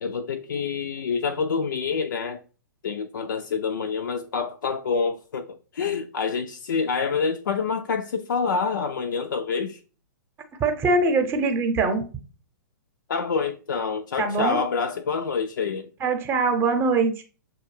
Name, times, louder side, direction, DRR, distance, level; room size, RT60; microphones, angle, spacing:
voice 1, 0.0-2.4 2.8-5.5 5.7-9.8 13.1-15.9, left 5 dB, 70° left, 0.4 m, -27 dB
voice 2, 10.6-12.1 14.2-14.6 16.0-17.2, right 3 dB, 20° right, 0.8 m, -22 dB
6.7 x 2.3 x 3.2 m
figure-of-eight pair, 115°, 11 cm